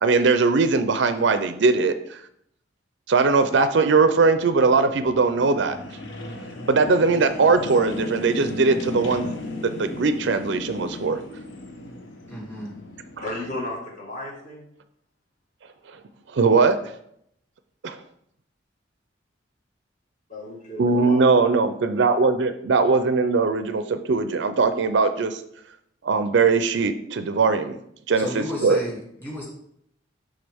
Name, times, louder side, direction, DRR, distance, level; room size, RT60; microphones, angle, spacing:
voice 1, 0.0-2.2 3.1-5.8 6.7-11.2 16.3-16.8 17.8-18.0 20.8-25.4 26.0-27.8 28.1-28.8, right 4 dB, 60° right, 10 dB, 0.5 m, -20 dB
sound 1, 3.9-13.6, left 2 dB, 65° left, 1.0 m, -36 dB
voice 2, 12.3-12.7 28.2-29.4, equal, 10° left, -4 dB, 2.4 m, -33 dB
voice 3, 13.2-14.7 20.3-21.3, left 1 dB, 40° left, -2 dB, 1.7 m, -34 dB
11.0 x 3.7 x 3.5 m, 0.73 s
head